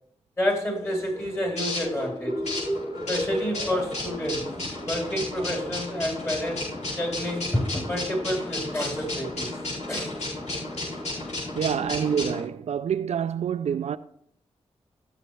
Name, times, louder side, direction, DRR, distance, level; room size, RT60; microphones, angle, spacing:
voice 1, 0.4-2.4 3.1-4.5 4.9-6.7 7.0-9.5 9.9-10.1, equal, 25° left, 4.2 m, -29 dB
sound 1, 0.8-12.4, left 2 dB, 80° left, 4.9 m, -33 dB
voice 2, 11.6-14.0, right 8 dB, 70° right, 0.4 m, -27 dB
15.0 x 6.6 x 3.3 m
cardioid pair, 60°, 12 cm